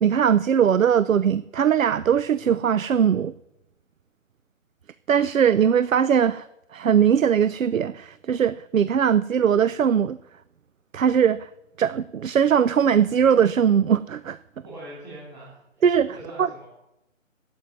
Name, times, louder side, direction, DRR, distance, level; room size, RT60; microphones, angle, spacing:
voice 1, 0.0-3.3 5.1-6.5 6.7-10.2 10.9-11.5 11.8-14.4 15.8-16.5, right 8 dB, 85° right, 0.6 m, -20 dB
voice 2, 14.6-15.8 16.1-16.7, right 1 dB, 10° right, 2.6 m, -41 dB
9.1 x 8.7 x 9.4 m
figure-of-eight pair, 160°, 39 cm